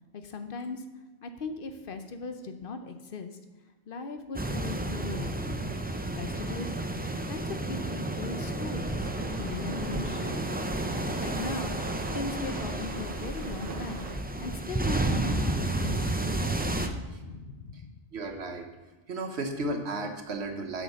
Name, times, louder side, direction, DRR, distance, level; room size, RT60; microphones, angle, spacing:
voice 1, 0.1-0.8 1.2-3.4 3.9-6.7 7.3-9.1 9.4-11.7 12.1-14.1 14.4-18.0, left 4 dB, 60° left, 7 dB, 0.9 m, -39 dB
sound 1, 4.3-16.9, right 2 dB, 15° right, 0.3 m, -31 dB
sound 2, 9.0-14.2, right 4 dB, 55° right, 1.0 m, -43 dB
voice 2, 18.1-18.7 19.1-20.8, right 2 dB, 80° right, 5 dB, 1.3 m, -34 dB
7.6 x 6.1 x 5.3 m, 1.2 s
omnidirectional pair, 1.1 m